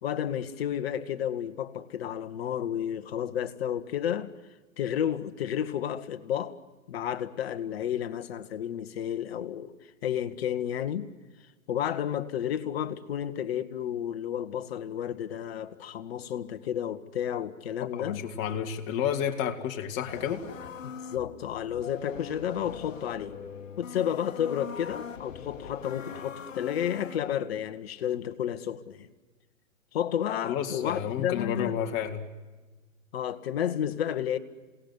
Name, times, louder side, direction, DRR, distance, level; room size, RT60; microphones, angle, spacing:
voice 1, 0.0-4.3 4.8-6.6 6.9-9.7 10.0-11.1 11.7-18.2 21.1-23.4 23.8-29.1 29.9-31.8 33.1-34.4, left 10 dB, 50° left, 1.8 m, -31 dB
voice 2, 17.9-20.4 30.4-32.2, left 9 dB, 30° left, 2.6 m, -31 dB
Vietnam Robot Flashback, 20.1-27.4, left 6 dB, 70° left, 1.7 m, -42 dB
27.5 x 19.0 x 9.7 m
figure-of-eight pair, 120°, 40 cm